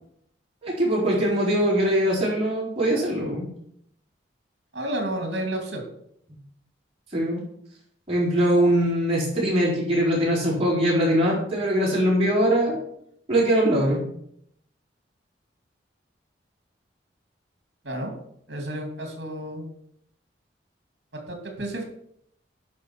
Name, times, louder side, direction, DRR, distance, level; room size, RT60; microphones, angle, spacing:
voice 1, 0.6-3.5 7.1-7.4 8.1-12.8 13.3-14.0, equal, 30° right, -5 dB, 4.3 m, -22 dB
voice 2, 4.7-5.8 17.8-18.1 18.5-19.7 21.3-21.8, right 1 dB, 70° right, 3 dB, 2.5 m, -31 dB
10.5 x 5.2 x 6.0 m, 0.71 s
head